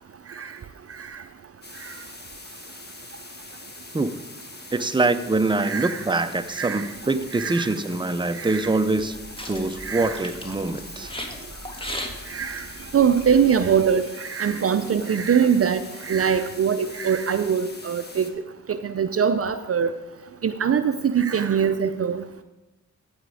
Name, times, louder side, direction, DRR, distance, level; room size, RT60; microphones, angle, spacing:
sound 1, 1.6-18.3, left 2 dB, 30° left, 1.6 m, -43 dB
voice 1, 4.7-9.2 9.5-11.1, right 2 dB, 15° right, 9 dB, 0.7 m, -24 dB
voice 2, 5.6-6.1 6.5-6.9 7.3-7.7 8.3-8.8 9.8-10.3 12.3-12.7 12.9-18.3 18.7-19.9 20.4-22.2, right 7 dB, 50° right, 10 dB, 0.6 m, -23 dB
sound 2, 9.1-13.9, equal, 15° left, 1.7 m, -38 dB
15.5 x 5.1 x 4.9 m, 1.0 s
cardioid pair, 45°, 31 cm